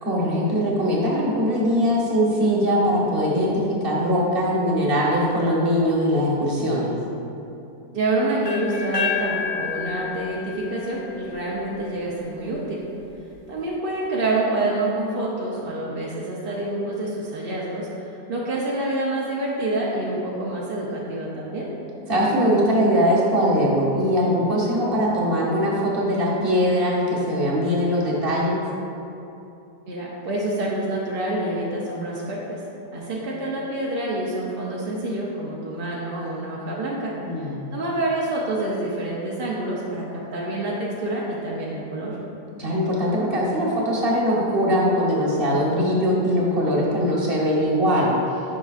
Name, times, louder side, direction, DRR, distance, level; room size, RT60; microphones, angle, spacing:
voice 1, 0.0-6.9 22.1-28.6 37.2-37.7 42.6-48.1, equal, 40° right, -4 dB, 1.2 m, -21 dB
voice 2, 7.9-12.8 13.5-21.7 29.9-32.6 32.9-37.2 37.7-42.2, right 2 dB, 55° right, -5 dB, 0.6 m, -27 dB
sound 1, 8.4-12.3, left 6 dB, 25° left, 1.0 m, -30 dB
9.0 x 5.6 x 2.4 m, 2.8 s
omnidirectional pair, 1.8 m